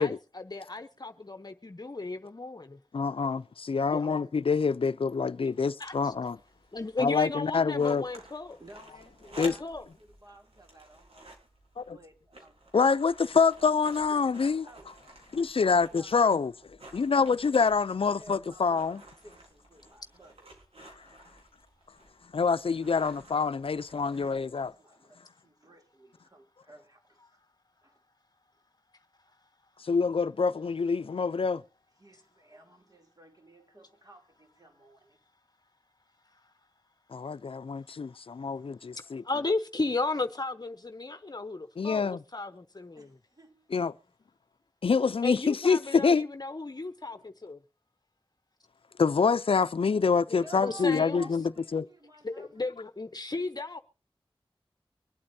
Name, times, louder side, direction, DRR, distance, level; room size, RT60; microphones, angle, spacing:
voice 1, 0.0-2.8 3.9-4.2 5.8-6.1 6.7-8.6 9.3-9.8 38.9-43.1 45.2-47.6 50.3-51.3 52.2-53.8, left 3 dB, 45° left, 0.9 m, -35 dB
voice 2, 2.9-6.4 7.0-8.0 9.4-9.5 11.8-12.0 12.7-14.7 15.3-16.5 16.9-19.0 22.3-24.7 29.8-31.6 37.1-39.2 41.8-42.2 43.7-43.9 44.8-46.2 49.0-51.4 51.7-51.8, left 5 dB, 70° left, 0.5 m, -26 dB
sound 1, 5.8-24.7, right 1 dB, 85° right, 4.5 m, -53 dB
voice 3, 8.6-11.3 11.8-12.6 14.1-14.9 15.9-16.5 18.1-20.6 21.3-21.4 24.2-27.4 27.8-28.0 32.0-35.2 43.0-43.7 50.3-52.6, right 2 dB, 40° right, 3.0 m, -53 dB
24.5 x 8.6 x 2.7 m
cardioid pair, 45°, 10 cm